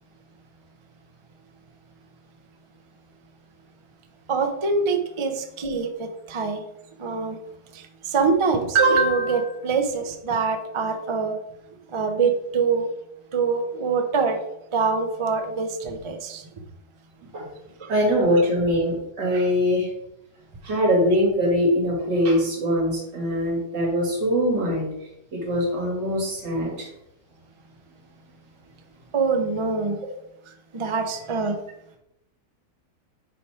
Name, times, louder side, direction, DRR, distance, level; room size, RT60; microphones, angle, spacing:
voice 1, 4.3-6.6 7.0-7.4 7.7-11.3 11.9-12.9 13.3-14.4 14.7-16.4 17.8-17.9 29.1-30.0 30.7-31.6, right 4 dB, 50° right, 0.3 m, -24 dB
voice 2, 17.9-19.9 20.6-24.9 25.3-26.9, equal, 90° right, 2.8 m, -22 dB
6.8 x 4.9 x 4.4 m
omnidirectional pair, 1.8 m